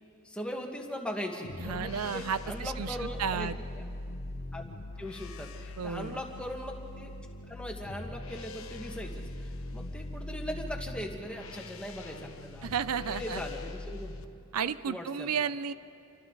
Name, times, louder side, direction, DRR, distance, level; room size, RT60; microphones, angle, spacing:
voice 1, 0.2-3.9 4.5-4.6 5.0-7.1 7.5-12.7 13.2-14.1 14.6-15.5, equal, 5° left, 1 dB, 1.6 m, -40 dB
sound 1, 1.4-14.3, left 2 dB, 65° left, 1.0 m, -41 dB
voice 2, 1.6-3.6 5.8-6.2 12.6-13.4 14.5-15.7, right 7 dB, 90° right, 15 dB, 0.5 m, -33 dB
28.5 x 24.5 x 4.0 m, 2.5 s
head